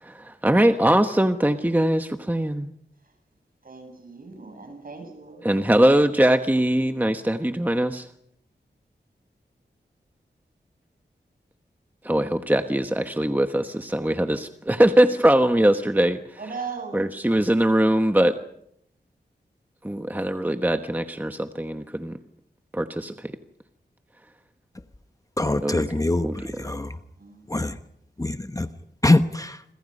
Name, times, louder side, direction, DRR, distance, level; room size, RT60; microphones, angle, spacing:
voice 1, 0.0-2.7 5.4-8.1 12.0-16.4 16.9-18.4 19.8-22.1 22.7-23.3 25.6-26.0 26.2-26.6, right 1 dB, 10° right, 7 dB, 1.2 m, -21 dB
voice 2, 3.6-5.5 16.4-17.0 27.2-27.5, right 5 dB, 55° right, 5 dB, 7.8 m, -38 dB
voice 3, 25.4-26.9 27.5-27.8 28.2-28.7 29.0-29.6, left 2 dB, 20° left, 9 dB, 1.0 m, -23 dB
27.5 x 25.5 x 5.4 m, 0.72 s
wide cardioid pair, 105°, 18 cm